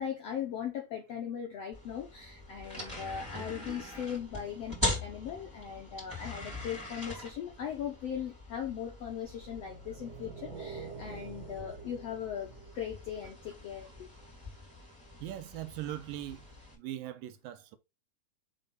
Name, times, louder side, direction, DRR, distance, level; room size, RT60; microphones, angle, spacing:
voice 1, 0.0-14.1, left 8 dB, 75° left, 1.4 m, -39 dB
sound 1, 1.7-16.7, left 1 dB, 5° right, 2.8 m, -42 dB
sound 2, 9.2-13.7, right 4 dB, 40° right, 1.7 m, -47 dB
voice 2, 15.2-16.5 16.7-17.8, right 13 dB, 80° right, 2.3 m, -40 dB
5.4 x 4.8 x 4.0 m
omnidirectional pair, 4.2 m